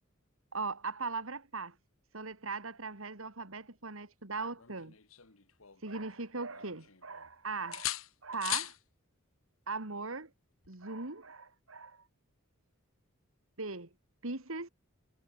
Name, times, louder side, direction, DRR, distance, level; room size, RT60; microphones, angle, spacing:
voice 1, 0.5-1.8 2.1-4.9 5.8-8.8 9.7-10.3 10.7-12.1 13.6-13.9 14.2-14.7, right 3 dB, 75° right, 2.6 m, -39 dB
sound 1, 4.6-6.1 6.5-7.3 7.7-8.8 10.6-10.9, left 13 dB, 80° left, 2.2 m, -40 dB
head